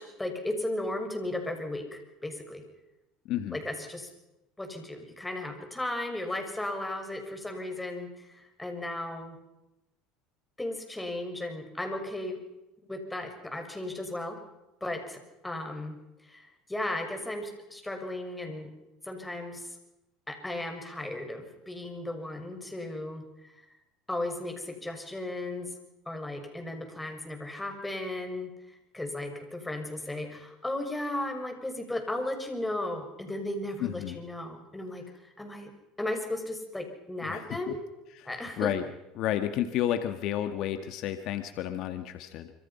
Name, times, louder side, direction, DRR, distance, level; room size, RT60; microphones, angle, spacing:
voice 1, 0.0-2.6 3.5-4.1 4.6-9.3 10.6-12.4 12.9-14.4 14.8-18.7 19.0-19.8 20.3-23.5 24.1-25.7 26.1-35.7 36.0-37.8 38.2-38.7, left 1 dB, 10° left, 5 dB, 6.4 m, -35 dB
voice 2, 33.8-34.2 37.3-37.7 38.6-38.8 39.2-42.5, left 11 dB, 60° left, 9 dB, 1.9 m, -31 dB
26.0 x 25.5 x 5.9 m, 0.94 s
hypercardioid pair, 85°, 0 cm